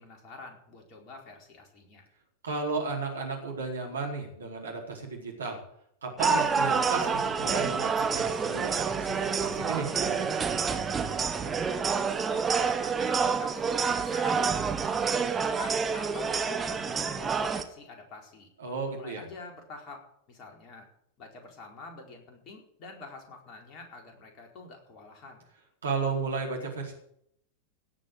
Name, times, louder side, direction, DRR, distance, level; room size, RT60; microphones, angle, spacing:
voice 1, 0.0-2.0 11.2-18.5 18.9-20.9 21.2-25.5, left 3 dB, 35° left, 2 dB, 4.5 m, -47 dB
voice 2, 2.4-5.6 6.0-10.4 18.6-19.2 25.8-26.9, right 4 dB, 70° right, 0 dB, 4.4 m, -34 dB
sound 1, 6.2-17.6, right 5 dB, 20° right, 1.4 m, -28 dB
17.5 x 6.4 x 9.1 m, 0.71 s
figure-of-eight pair, 90°, 0 cm